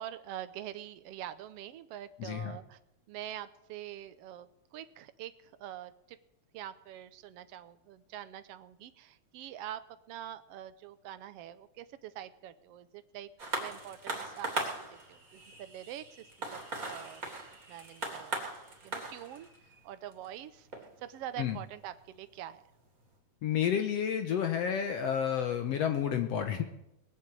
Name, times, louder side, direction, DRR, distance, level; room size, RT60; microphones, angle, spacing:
voice 1, 0.0-2.8 3.1-4.5 4.7-6.2 6.5-9.8 10.1-13.3 13.6-17.3 17.7-18.4 18.8-19.5 19.8-20.7 21.0-22.6, right 12 dB, 75° right, 13 dB, 1.4 m, -45 dB
voice 2, 2.2-2.6 21.4-21.6 23.4-26.7, left 8 dB, 65° left, 6 dB, 1.8 m, -30 dB
sound 1, 13.4-22.2 23.0-23.1, right 2 dB, 30° right, 3.5 m, -40 dB
20.5 x 7.7 x 8.4 m, 0.84 s
omnidirectional pair, 3.5 m